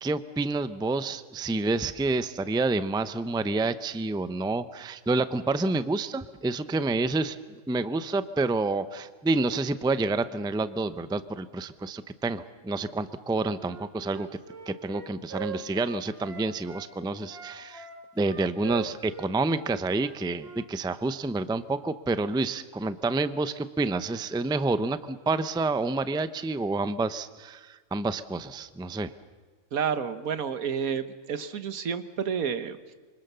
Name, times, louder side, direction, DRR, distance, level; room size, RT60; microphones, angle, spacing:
voice 1, 0.0-14.3 14.7-17.9 18.2-29.1, right 3 dB, 5° right, 12 dB, 0.4 m, -28 dB
Wind instrument woodwind instrument, 13.6-16.9 17.3-20.7, right 6 dB, 45° right, 2.3 m, -41 dB
voice 2, 29.7-32.9, right 7 dB, 85° right, 11 dB, 1.6 m, -30 dB
25.5 x 25.0 x 6.9 m, 1.3 s
omnidirectional pair, 1.4 m